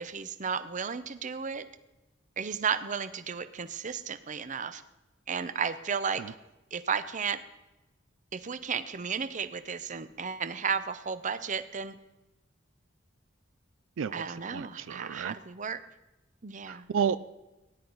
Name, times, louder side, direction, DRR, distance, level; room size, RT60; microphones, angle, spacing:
voice 1, 0.0-1.7 2.4-4.8 5.3-6.4 6.7-7.4 8.3-11.9 14.1-15.8 16.4-16.9, right 6 dB, 40° right, 13 dB, 0.6 m, -33 dB
voice 2, 14.0-15.4 16.7-17.2, right 7 dB, 85° right, 15 dB, 0.4 m, -32 dB
18.0 x 10.5 x 4.0 m, 1.0 s
head